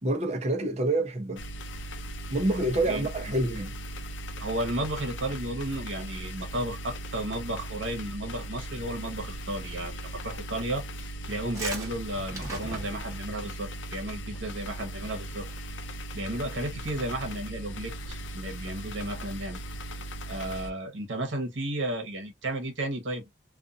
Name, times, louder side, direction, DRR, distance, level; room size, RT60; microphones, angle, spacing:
voice 1, 0.0-1.4 2.3-3.7, right 1 dB, 35° right, 0.7 m, -27 dB
sound 1, 1.4-20.7, right 1 dB, 70° left, 0.5 m, -38 dB
voice 2, 4.4-15.5 16.1-19.6 20.3-23.3, right 1 dB, 80° right, 1.1 m, -33 dB
sound 2, 11.3-13.3 14.3-14.6 14.9-15.0 15.2-15.6, right 2 dB, 15° right, 1.1 m, -38 dB
2.5 x 2.4 x 2.4 m
head